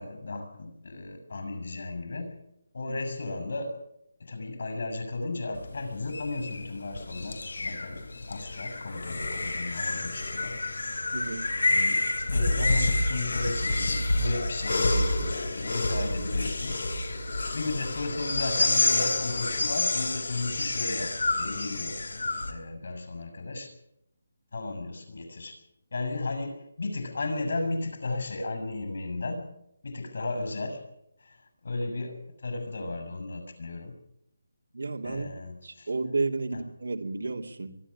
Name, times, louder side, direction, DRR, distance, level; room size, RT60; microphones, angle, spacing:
voice 1, 0.0-2.3 2.7-3.8 4.2-8.0 8.3-10.6 11.7-16.7 17.5-21.1 21.4-22.0 22.5-23.7 24.5-25.5 25.9-29.4 29.8-30.8 31.2-33.9 35.0-35.9 36.5-36.6, left 2 dB, 55° left, 7 dB, 6.9 m, -34 dB
sound 1, 5.5-22.5, left 2 dB, 85° left, 3.9 m, -29 dB
voice 2, 11.1-11.5 34.7-35.3 35.6-37.8, right 3 dB, 85° right, 3 dB, 2.8 m, -32 dB
23.5 x 12.0 x 9.9 m, 0.80 s
hypercardioid pair, 175°, 0 cm